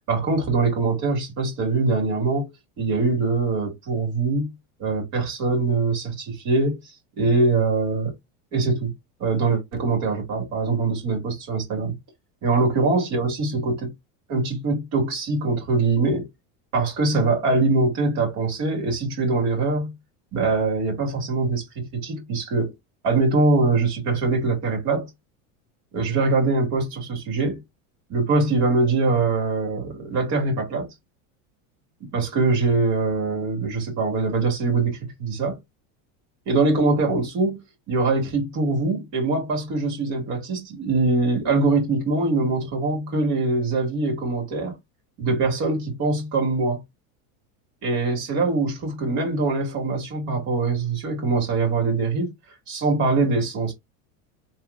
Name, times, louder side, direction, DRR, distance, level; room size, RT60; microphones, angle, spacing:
voice 1, 0.1-2.5 2.8-4.5 4.8-8.1 8.5-8.9 9.2-11.9 12.4-13.9 14.3-16.3 16.7-19.9 20.3-22.7 23.0-25.1 25.9-27.6 28.1-30.9 32.0-35.6 36.5-37.6 37.9-44.8 45.2-46.8 47.8-52.3 52.7-53.7, right 3 dB, 45° right, 2.1 m, -23 dB
3.7 x 3.0 x 2.4 m
supercardioid pair, 160°, 38 cm